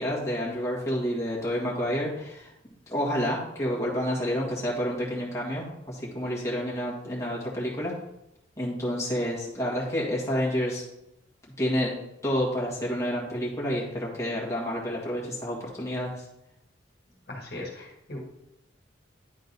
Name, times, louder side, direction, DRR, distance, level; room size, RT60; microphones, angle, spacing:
voice 1, 0.0-2.5 2.9-7.9 8.6-10.8 11.6-11.9 12.2-16.2, equal, 15° left, -5 dB, 1.7 m, -29 dB
voice 2, 17.3-18.2, left 1 dB, 60° left, -2 dB, 1.5 m, -38 dB
10.0 x 3.8 x 4.0 m, 0.85 s
head